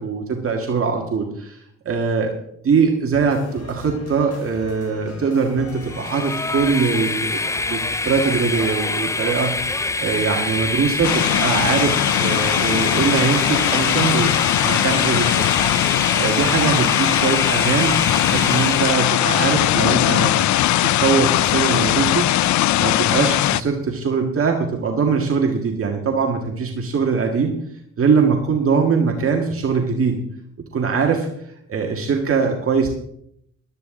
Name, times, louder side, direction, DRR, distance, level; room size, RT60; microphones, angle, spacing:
voice 1, 0.0-2.3 2.6-14.3 14.6-15.4 15.7-20.3 20.8-27.5 28.0-30.2 30.7-32.9, right 5 dB, 45° right, 2 dB, 1.8 m, -22 dB
sound 1, 3.2-22.0, left 2 dB, 55° left, 4.8 m, -39 dB
Train, 5.8-19.3, left 3 dB, 10° left, 0.4 m, -25 dB
sound 2, 11.0-23.6, left 14 dB, 70° left, 0.5 m, -19 dB
14.5 x 12.5 x 3.8 m, 0.73 s
cardioid pair, 90°, 30 cm